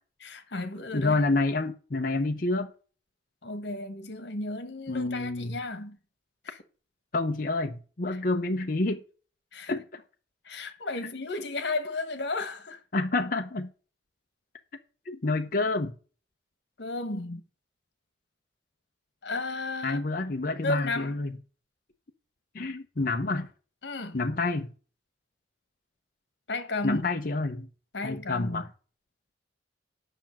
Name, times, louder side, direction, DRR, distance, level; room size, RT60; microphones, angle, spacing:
voice 1, 0.2-1.2 3.4-6.0 6.4-6.6 8.1-8.2 9.5-9.7 10.4-12.8 16.8-17.4 19.2-20.0 20.6-21.2 23.8-24.2 26.5-27.1 27.9-28.7, left 2 dB, 65° left, 1.4 m, -33 dB
voice 2, 0.9-2.7 4.9-5.6 7.1-9.0 9.7-10.0 12.9-13.7 15.1-15.9 19.8-21.4 22.5-23.5 24.1-24.7 26.8-27.7 28.0-28.7, left 2 dB, 50° left, 0.7 m, -28 dB
8.1 x 5.9 x 7.3 m
head